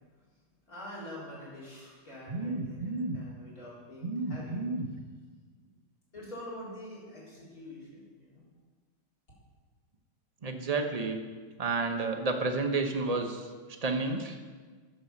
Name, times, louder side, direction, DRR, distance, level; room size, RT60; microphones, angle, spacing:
voice 1, 0.7-4.6 6.1-8.5, left 1 dB, 50° left, -6 dB, 4.5 m, -45 dB
voice 2, 2.3-3.2 4.0-4.9 10.4-11.2 11.6-13.5 13.8-14.4, right 3 dB, 45° right, 5 dB, 0.5 m, -31 dB
10.0 x 6.6 x 7.1 m, 1.5 s
omnidirectional pair, 1.9 m